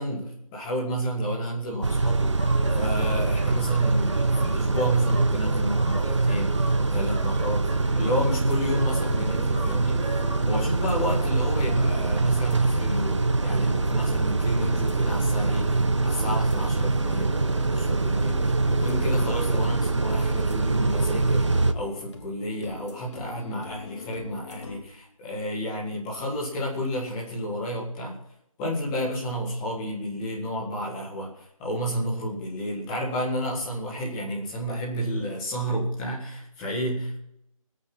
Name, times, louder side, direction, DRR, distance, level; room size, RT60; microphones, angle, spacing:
voice 1, 0.0-2.4 2.7-10.0 10.4-17.3 17.6-28.2 28.6-37.2, equal, 5° left, -6 dB, 1.9 m, -31 dB
Car / Idling / Accelerating revving vroom, 1.8-21.7, right 3 dB, 55° right, 1.2 m, -24 dB
sound 1, 2.4-10.7, right 2 dB, 10° right, 1.4 m, -39 dB
sound 2, 7.7-24.8, left 3 dB, 55° left, 2.9 m, -42 dB
22.5 x 8.6 x 6.2 m, 0.78 s
figure-of-eight pair, 180°, 18 cm